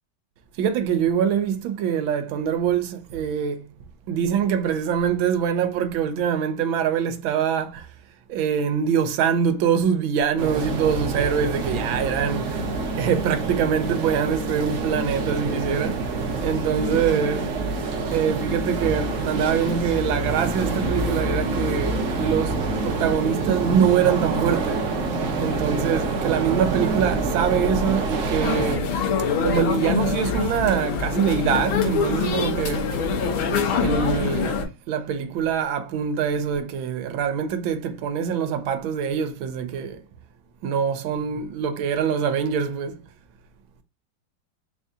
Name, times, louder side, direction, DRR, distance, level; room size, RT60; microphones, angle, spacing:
voice 1, 0.6-3.6 4.1-7.9 8.3-17.5 18.1-24.8 25.4-28.9 29.4-32.8 33.8-40.0 40.6-43.0, right 7 dB, 85° right, 1.4 m, -24 dB
sound 1, 10.4-28.7, right 3 dB, 60° right, 0.8 m, -26 dB
sound 2, 28.4-34.7, left 5 dB, 90° left, 1.8 m, -24 dB
4.1 x 2.7 x 3.5 m
omnidirectional pair, 2.2 m